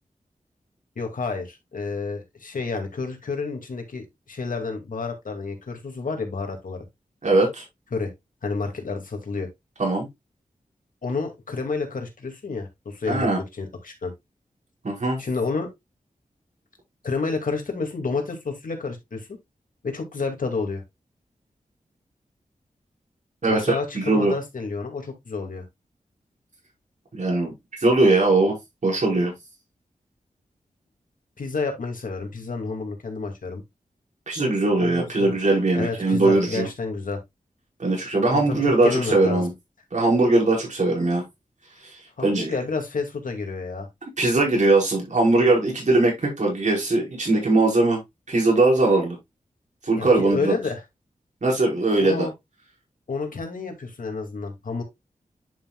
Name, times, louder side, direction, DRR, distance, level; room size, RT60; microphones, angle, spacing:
voice 1, 1.0-6.8 7.9-8.1 8.4-9.5 11.0-14.1 15.2-15.7 17.0-19.4 19.8-20.8 23.5-25.6 31.4-33.6 34.8-35.4 35.8-37.2 38.3-39.5 42.2-43.9 49.9-50.8 52.0-52.3 53.1-54.8, left 4 dB, 75° left, 2.4 m, -30 dB
voice 2, 7.2-7.6 9.8-10.1 13.1-13.4 14.8-15.2 23.4-24.3 27.1-28.6 28.8-29.3 34.3-36.7 37.8-39.5 39.9-41.2 41.8-42.5 44.2-48.0 48.3-49.2 49.8-50.5 51.4-52.3, right 2 dB, 60° right, 5.2 m, -20 dB
10.5 x 5.9 x 2.4 m
wide cardioid pair, 65°, 14 cm